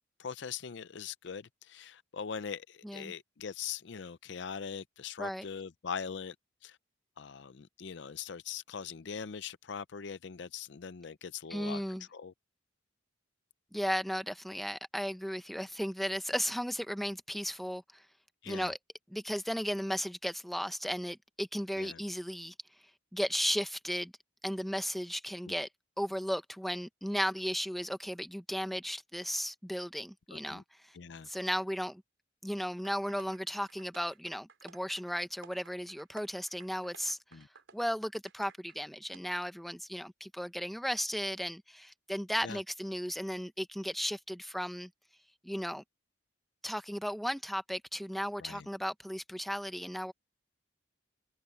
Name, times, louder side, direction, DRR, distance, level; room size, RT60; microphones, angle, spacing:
voice 1, 0.2-6.4 6.6-6.8 7.2-12.3 18.4-18.7 21.8-22.0 25.5-25.6 30.3-30.6 30.9-31.3 37.3-37.5 42.4-42.6 48.4-48.7, left 6 dB, 65° left, 0.5 m, -42 dB
voice 2, 11.5-12.0 13.7-18.0 18.5-18.8 19.1-22.5 23.1-24.1 24.4-25.7 26.0-30.9 31.3-32.0 32.4-37.5 37.7-44.9 45.4-45.8 46.6-50.1, equal, ahead, 0.9 m, -35 dB
sound 1, 32.8-38.8 39.1-39.2, right 5 dB, 75° right, 3.6 m, -57 dB
head